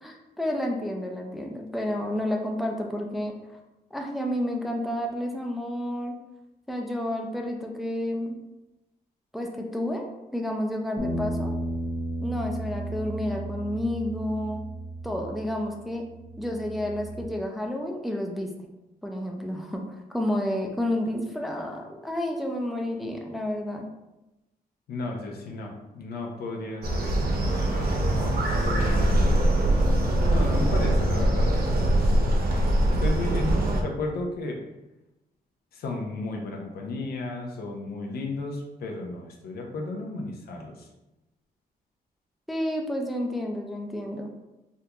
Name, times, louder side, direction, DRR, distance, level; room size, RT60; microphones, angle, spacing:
voice 1, 0.0-3.3 3.9-6.2 6.7-8.4 9.3-11.5 12.2-14.6 15.0-16.0 16.4-18.7 19.0-19.8 20.1-23.8 42.5-44.3, left 1 dB, ahead, 1 dB, 0.4 m, -30 dB
sound 1, 11.0-17.2, right 1 dB, 50° left, 0.8 m, -34 dB
voice 2, 24.9-29.6 30.0-32.2 32.9-34.6 35.7-40.9, left 2 dB, 85° left, 1 dB, 0.6 m, -34 dB
sound 2, 26.8-33.8, right 1 dB, 75° right, 0.5 m, -23 dB
3.6 x 2.3 x 2.8 m, 0.97 s
cardioid pair, 120°, 16 cm